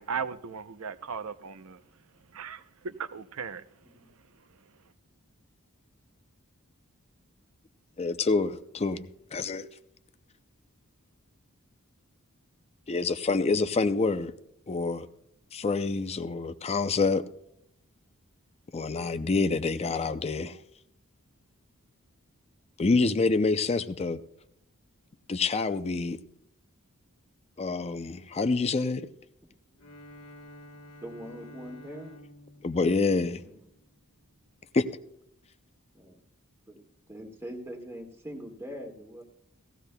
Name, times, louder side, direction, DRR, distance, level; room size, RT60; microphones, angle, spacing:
voice 1, 0.0-1.8 2.3-3.6, right 6 dB, 70° right, 0.6 m, -37 dB
voice 2, 8.0-9.7 12.9-14.3 14.7-15.1 15.5-17.3 18.7-20.6 22.8-24.2 25.3-26.2 27.6-29.1 32.6-33.4 34.7-34.9, left 3 dB, 30° left, 0.5 m, -27 dB
Bowed string instrument, 29.7-34.1, left 1 dB, 65° left, 1.2 m, -50 dB
voice 3, 31.0-32.2 33.4-33.6 35.9-36.2 36.7-36.8 37.1-39.2, equal, 10° right, 1.6 m, -42 dB
17.5 x 15.0 x 2.2 m
head